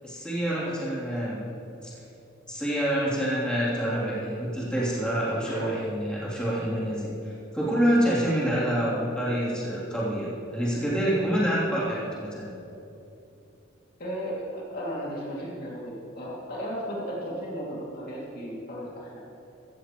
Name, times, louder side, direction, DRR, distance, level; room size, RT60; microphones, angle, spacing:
voice 1, 0.0-1.4 1.8-1.9 2.5-12.5, equal, 5° left, -8 dB, 3.2 m, -27 dB
voice 2, 5.4-5.8 8.4-8.7 14.0-19.2, equal, 45° left, -5 dB, 2.6 m, -35 dB
15.5 x 14.5 x 3.1 m, 2.8 s
head